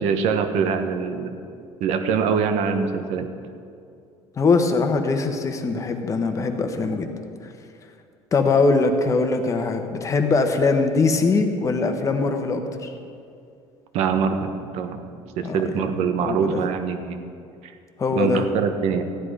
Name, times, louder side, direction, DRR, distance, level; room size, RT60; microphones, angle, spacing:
voice 1, 0.0-1.3 1.8-3.3 13.9-15.0 15.4-17.2 17.6-17.7 18.1-19.0, right 6 dB, 70° right, 7 dB, 1.2 m, -24 dB
voice 2, 4.4-7.1 8.3-12.9 15.4-15.6 16.2-16.6 18.0-18.5, left 4 dB, 25° left, 6 dB, 1.1 m, -21 dB
14.5 x 10.0 x 5.0 m, 2.5 s
cardioid pair, 140°, 12 cm